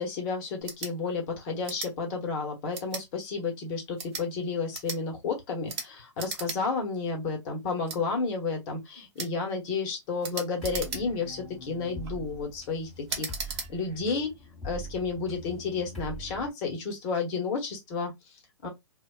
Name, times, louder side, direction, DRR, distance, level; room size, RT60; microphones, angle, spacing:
voice 1, 0.0-14.3 14.6-18.7, left 4 dB, 40° left, 1.0 m, -32 dB
sound 1, 0.6-0.9 1.6-1.9 2.7-3.1 3.9-4.3 4.7-5.0 5.7-5.9 6.2-6.6 6.9-7.0 7.9-8.0 9.2-9.3 10.2-11.3 11.8-12.1 13.1-13.7, right 4 dB, 60° right, 0.9 m, -36 dB
sound 2, 10.6-16.5, equal, 5° left, 1.2 m, -42 dB
2.4 x 2.2 x 2.3 m
hypercardioid pair, 125°, 16 cm